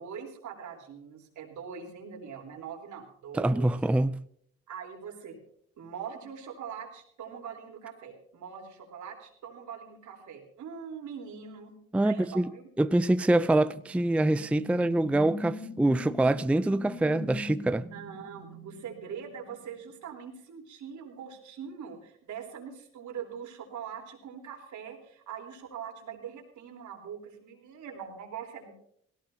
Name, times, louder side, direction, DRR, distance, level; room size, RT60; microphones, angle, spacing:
voice 1, 0.0-3.7 4.7-5.4 5.8-11.8 12.0-12.7 17.9-28.7, right 7 dB, 75° right, 3.9 m, -42 dB
voice 2, 3.3-4.2 11.9-12.5 12.8-17.9, right 1 dB, 5° right, 0.4 m, -25 dB
sound 1, 13.5-19.8, left 1 dB, 35° left, 2.8 m, -43 dB
18.0 x 17.0 x 2.8 m
cardioid pair, 90°, 30 cm